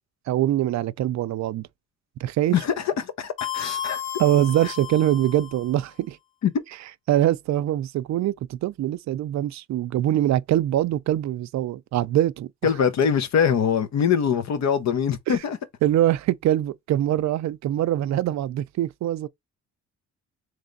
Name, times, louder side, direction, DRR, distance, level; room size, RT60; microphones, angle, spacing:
voice 1, 0.3-1.7 2.2-2.6 4.2-6.2 7.1-12.5 15.3-15.4 15.8-19.3, right 12 dB, 65° right, 0.5 m, -23 dB
voice 2, 2.5-4.0 6.4-6.5 12.6-15.6, left 7 dB, 60° left, 1.0 m, -23 dB
sound 1, 3.4-5.7, left 9 dB, 40° left, 1.5 m, -33 dB
3.4 x 3.2 x 4.0 m
cardioid pair, 90°, 30 cm